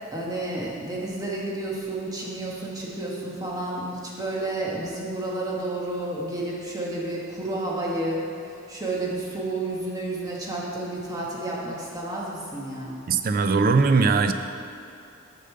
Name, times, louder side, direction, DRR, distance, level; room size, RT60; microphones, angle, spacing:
voice 1, 0.1-8.2 8.7-13.0, right 2 dB, 20° right, -4 dB, 1.3 m, -31 dB
voice 2, 13.1-14.3, right 4 dB, 45° right, 8 dB, 0.4 m, -20 dB
6.6 x 5.4 x 6.5 m, 2.4 s
head